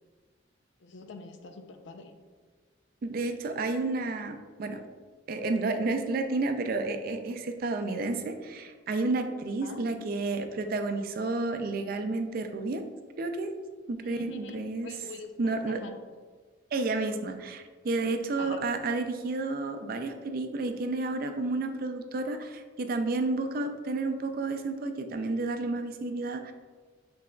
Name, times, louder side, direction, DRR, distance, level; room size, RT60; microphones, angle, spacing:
voice 1, 0.8-2.1 9.6-9.8 14.0-16.0 18.0-18.7, left 3 dB, 80° left, 6 dB, 0.5 m, -45 dB
voice 2, 3.0-4.8 5.3-12.8 13.2-13.5 13.9-14.9 15.4-15.8 16.7-26.5, right 3 dB, 50° right, 7 dB, 0.4 m, -31 dB
6.0 x 3.3 x 2.2 m, 1.5 s
head